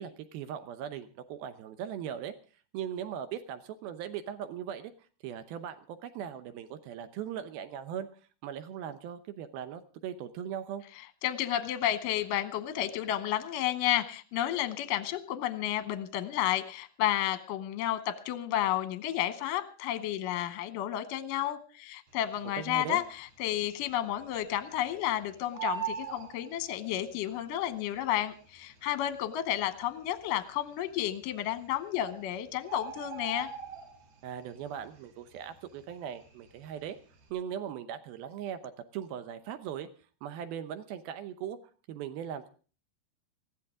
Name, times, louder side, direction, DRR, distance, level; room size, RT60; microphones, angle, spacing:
voice 1, 0.0-2.3 2.7-4.9 5.2-8.1 8.4-10.8 22.5-23.0 34.2-37.0 37.3-38.6 38.9-39.9 40.2-41.6 41.9-42.5, right 9 dB, 75° right, 11 dB, 2.4 m, -39 dB
voice 2, 11.2-33.5, left 12 dB, 75° left, 12 dB, 2.0 m, -31 dB
Bird, 22.6-23.2 23.5-23.6 23.9-25.1 25.3-27.2 28.0-28.1 28.8-28.9 29.1-29.2 29.8-30.3 31.2-31.3 31.7-31.8 32.0-34.3 34.6-35.0 35.3-36.6 37.0-37.2, right 8 dB, 55° right, 4.5 m, -40 dB
20.0 x 15.0 x 3.7 m, 0.38 s
omnidirectional pair, 5.2 m